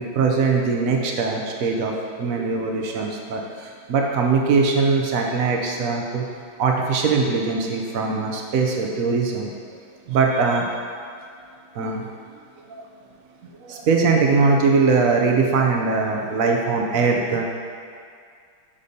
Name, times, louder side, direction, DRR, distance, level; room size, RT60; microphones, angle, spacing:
voice 1, 0.0-1.9 2.2-6.3 6.6-9.8 10.1-10.8 11.7-12.1 12.6-12.8 13.4-17.5, right 4 dB, 75° right, 1 dB, 0.7 m, -21 dB
8.5 x 6.8 x 2.7 m, 2.3 s
omnidirectional pair, 2.2 m